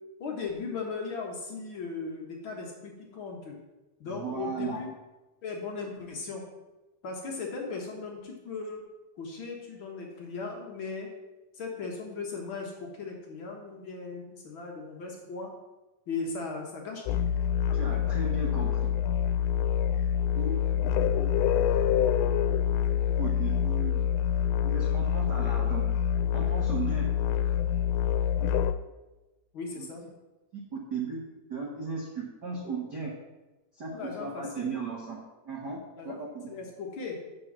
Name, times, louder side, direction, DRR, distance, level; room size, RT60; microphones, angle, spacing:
voice 1, 0.2-3.6 4.0-4.9 5.4-6.4 7.0-8.8 9.2-11.1 11.5-15.5 16.1-17.2 17.9-18.0 29.5-30.0 33.9-34.7 36.0-36.2 36.5-37.2, left 4 dB, 60° left, 0 dB, 1.3 m, -37 dB
voice 2, 4.1-4.8 17.7-18.9 20.3-22.5 23.0-24.1 24.6-25.9 26.3-27.2 29.8-29.9 30.7-31.2 31.5-33.1 33.7-33.9 34.2-35.2 35.4-35.8 36.0-36.5, right 4 dB, 75° right, -3 dB, 0.9 m, -36 dB
sound 1, 17.1-28.7, left 9 dB, 85° left, 2.5 m, -26 dB
6.9 x 6.4 x 7.3 m, 1.1 s
omnidirectional pair, 4.3 m